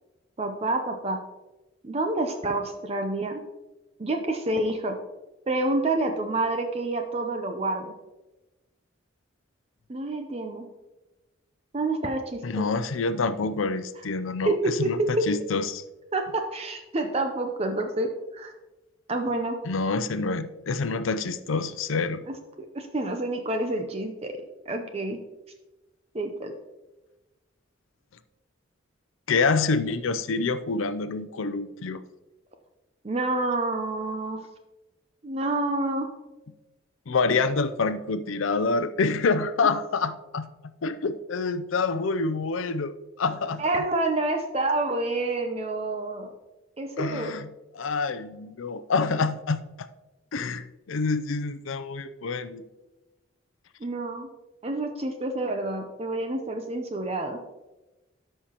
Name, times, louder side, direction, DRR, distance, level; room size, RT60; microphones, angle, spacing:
voice 1, 0.4-1.2 1.8-3.4 4.0-5.0 5.5-7.9 9.9-10.7 11.7-12.7 14.4-15.3 16.1-18.5 19.1-19.6 22.6-24.3 24.7-25.2 26.1-26.5 33.0-34.4 35.2-36.1 43.6-46.3 46.8-47.3 53.8-54.3 54.6-57.4, right 2 dB, 30° right, 5 dB, 0.6 m, -28 dB
voice 2, 12.4-15.8 19.6-22.2 29.3-32.0 37.1-40.5 40.8-43.8 47.0-47.5 47.7-49.6 50.3-52.6, left 4 dB, 75° left, 13 dB, 0.5 m, -27 dB
13.0 x 5.7 x 2.9 m, 1.1 s
head